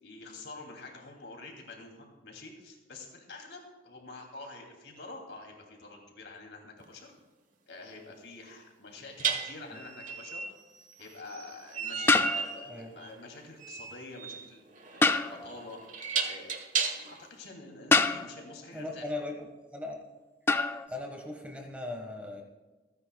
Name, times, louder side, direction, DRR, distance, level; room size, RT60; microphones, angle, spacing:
voice 1, 0.0-7.1 7.7-10.5 11.0-16.6 16.9-19.1, left 2 dB, 75° left, 2 dB, 2.8 m, -47 dB
sound 1, 6.8-6.9 9.2-17.3, right 6 dB, 45° right, 1.3 m, -35 dB
sound 2, 9.6-9.8 12.1-12.9 15.0-15.6 17.9-18.6 20.5-20.9, left 3 dB, 10° left, 0.3 m, -26 dB
voice 2, 18.7-20.0 20.9-22.4, left 2 dB, 5° right, 2 dB, 1.5 m, -39 dB
27.0 x 10.0 x 2.3 m, 1.2 s
head